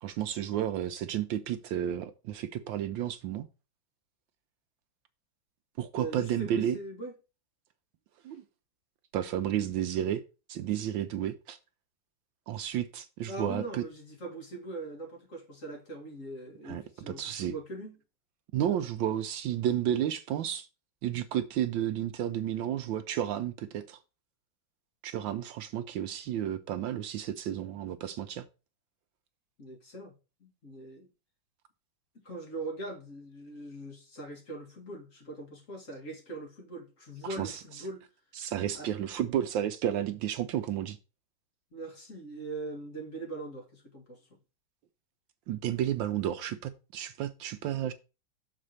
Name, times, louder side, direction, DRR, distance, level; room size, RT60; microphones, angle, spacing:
voice 1, 0.0-3.5 5.8-6.8 8.2-8.4 9.1-10.2 10.5-11.6 12.5-13.8 16.6-17.5 18.5-20.7 21.0-24.0 25.0-28.5 37.4-37.9 38.3-41.0 45.5-47.9, right 10 dB, 75° right, 1.2 m, -32 dB
voice 2, 5.9-7.1 13.3-18.0 29.6-30.1 30.4-31.1 32.1-38.1 38.7-38.9 41.7-44.4, right 2 dB, 40° left, 2.1 m, -41 dB
6.8 x 4.1 x 6.4 m
omnidirectional pair, 2.3 m